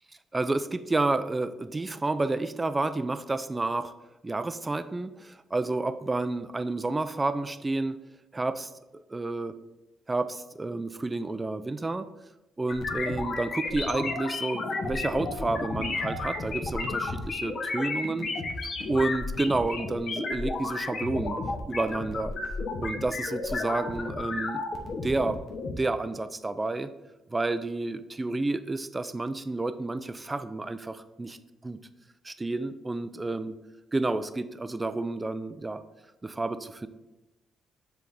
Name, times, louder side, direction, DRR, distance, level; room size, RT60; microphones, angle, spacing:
voice 1, 0.3-3.9 4.2-8.0 8.3-9.5 10.1-12.1 12.6-18.3 18.9-21.4 21.7-22.3 22.8-24.6 25.0-25.4 25.8-26.9 27.3-31.4 31.6-31.8 32.2-33.6 33.9-35.8 36.2-36.9, right 2 dB, 20° right, 12 dB, 0.4 m, -30 dB
sound 1, 12.7-25.7, left 3 dB, 55° left, 1.0 m, -32 dB
7.4 x 3.4 x 3.9 m, 1.0 s
cardioid pair, 90°, 0 cm